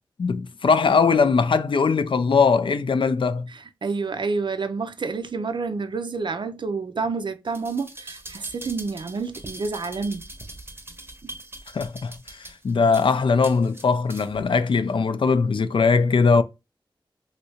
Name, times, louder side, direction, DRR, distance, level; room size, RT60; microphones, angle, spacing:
voice 1, 0.2-3.5 11.7-16.4, left 5 dB, 70° left, 0.4 m, -20 dB
voice 2, 3.5-10.2 11.2-11.3, right 4 dB, 65° right, 0.5 m, -29 dB
sound 1, 7.5-14.5 14.9-15.0, right 1 dB, 25° right, 0.7 m, -42 dB
3.2 x 2.7 x 2.8 m
wide cardioid pair, 90°, 9 cm